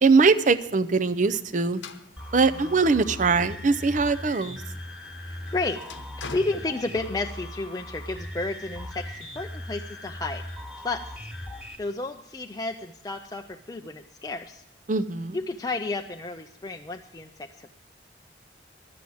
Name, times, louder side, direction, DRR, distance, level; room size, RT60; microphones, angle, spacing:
voice 1, 0.0-1.8 2.3-4.6 14.9-15.4, right 4 dB, 40° right, 12 dB, 0.5 m, -21 dB
sound 1, 1.7-4.2 4.6-7.4, left 4 dB, 75° left, 0.9 m, -44 dB
sound 2, 2.2-11.8, left 1 dB, ahead, 1.5 m, -39 dB
voice 2, 5.2-5.8 6.2-10.4 10.8-11.0 11.8-14.6 15.3-17.7, left 2 dB, 20° left, 4 dB, 0.4 m, -32 dB
12.0 x 7.7 x 8.4 m, 0.76 s
head